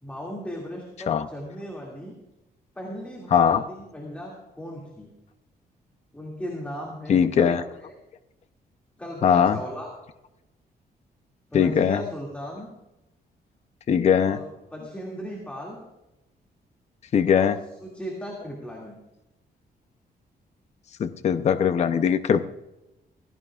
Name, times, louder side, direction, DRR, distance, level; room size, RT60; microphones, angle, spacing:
voice 1, 0.0-2.1 2.8-5.1 6.1-7.9 9.0-9.9 11.5-12.7 14.2-14.4 14.7-15.8 17.3-17.5 17.8-19.0, equal, 10° left, -2 dB, 2.3 m, -36 dB
voice 2, 3.3-3.6 7.1-7.6 9.2-9.6 11.5-12.0 13.9-14.4 17.1-17.6 21.0-22.6, left 7 dB, 40° left, 10 dB, 0.6 m, -20 dB
17.0 x 16.0 x 2.4 m, 0.94 s
wide cardioid pair, 165°, 17 cm